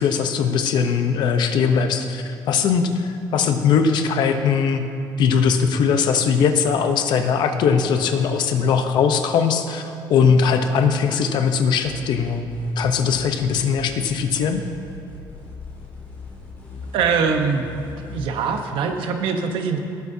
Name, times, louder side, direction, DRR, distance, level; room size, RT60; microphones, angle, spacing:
voice 1, 0.0-4.9 5.2-12.5 12.8-14.6, left 6 dB, 60° left, 7 dB, 0.8 m, -20 dB
sound 1, 11.8-18.7, left 2 dB, 20° left, 2.6 m, -38 dB
voice 2, 16.9-17.7 18.1-19.8, right 5 dB, 85° right, 5 dB, 1.0 m, -22 dB
17.5 x 9.3 x 2.7 m, 2.8 s
cardioid pair, 180°, 9 cm